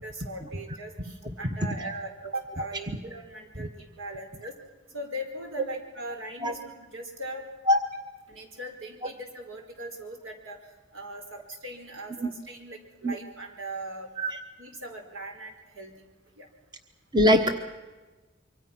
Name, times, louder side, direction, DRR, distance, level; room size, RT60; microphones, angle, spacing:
voice 1, 0.0-4.6 4.9-7.5 8.3-10.6 10.9-14.1 14.6-15.9 16.4-16.5, right 1 dB, 70° right, 3 dB, 4.4 m, -39 dB
voice 2, 17.1-17.5, left 1 dB, 20° right, 6 dB, 1.1 m, -22 dB
26.0 x 24.0 x 6.0 m, 1.2 s
head